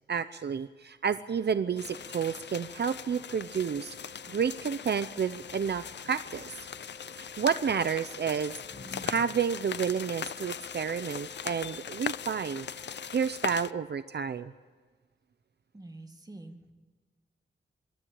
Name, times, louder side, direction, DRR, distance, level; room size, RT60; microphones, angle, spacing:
voice 1, 0.1-4.0 4.3-6.7 7.2-8.5 8.8-12.7 13.1-14.5, right 7 dB, 60° right, 12 dB, 0.6 m, -30 dB
Wind instrument woodwind instrument, 1.4-14.8, equal, 85° left, 3.8 m, -55 dB
sound 1, 1.8-13.7, left 8 dB, 65° left, 0.5 m, -40 dB
sound 2, 8.1-9.1 9.4-9.5 11.1-11.2 11.4-11.9, left 1 dB, 40° left, 7.6 m, -49 dB
voice 2, 15.7-16.7, right 2 dB, 20° right, 5 dB, 2.1 m, -46 dB
26.5 x 13.0 x 8.7 m, 1.4 s
wide cardioid pair, 145°, 19 cm